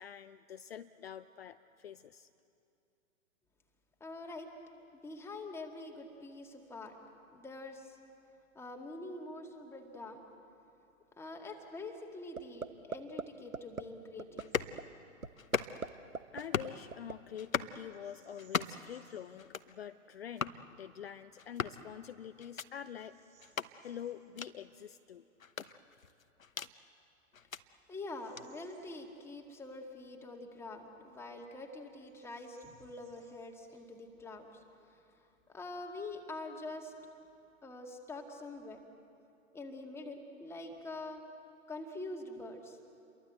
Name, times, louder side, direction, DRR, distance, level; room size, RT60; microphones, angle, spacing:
voice 1, 0.0-2.3 16.3-23.2 23.8-25.3, left 9 dB, 45° left, 12 dB, 0.7 m, -46 dB
voice 2, 4.0-4.5 4.9-7.0 7.3-8.0 8.5-10.3 11.2-14.8 27.9-35.0 35.5-37.0 37.6-38.8 39.5-41.2 41.7-42.8, left 2 dB, 5° left, 2 dB, 2.0 m, -45 dB
sound 1, 12.4-12.7 12.9-13.2 13.5-13.8 14.2-14.4 14.8-14.9 15.2-15.9 16.1-17.1, right 4 dB, 90° right, 1.2 m, -38 dB
sound 2, 14.4-14.8 15.4-15.9 16.4-16.8 17.4-17.8 18.4-18.9 19.4-19.7 20.4-20.6 21.4-21.8 22.4-22.7 23.4-23.7 24.4-24.5 25.4-26.7 27.3-27.6 28.4-28.5, left 6 dB, 75° left, 1.1 m, -37 dB
Bird vocalization bird call bird song, 14.5-14.8 15.1-15.3 17.9-19.4 19.9-20.0 20.6-21.0 21.6-21.7 22.3-24.2 26.3-26.4 27.0-29.5 29.8-29.9 30.6-31.4 31.6-31.7 32.0-34.1, right 7 dB, 15° right, 5.1 m, -70 dB
29.5 x 23.0 x 8.0 m, 2.7 s
figure-of-eight pair, 125°, 41 cm